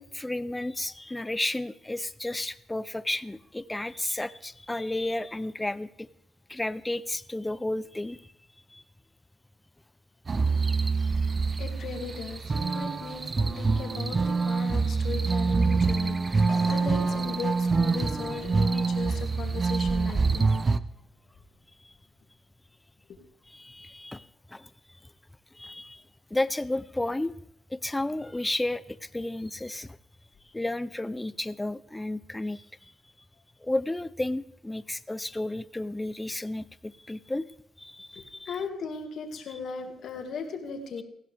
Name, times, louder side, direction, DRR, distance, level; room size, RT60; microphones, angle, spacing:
voice 1, 0.0-6.1 6.5-8.2 8.7-8.8 11.0-11.1 23.5-24.3 24.5-24.7 25.5-26.0 26.3-27.3 27.7-29.9 30.5-32.6 33.6-37.4 37.8-38.5, left 1 dB, 10° left, 16 dB, 0.6 m, -32 dB
sound 1, 10.3-20.8, right 4 dB, 30° right, 0.6 m, -26 dB
voice 2, 11.6-20.5 38.5-41.0, left 5 dB, 65° left, 3 dB, 2.2 m, -37 dB
sound 2, 16.5-20.6, left 4 dB, 45° left, 2.3 m, -44 dB
18.5 x 15.5 x 3.5 m, 0.72 s
cardioid pair, 90°, 0 cm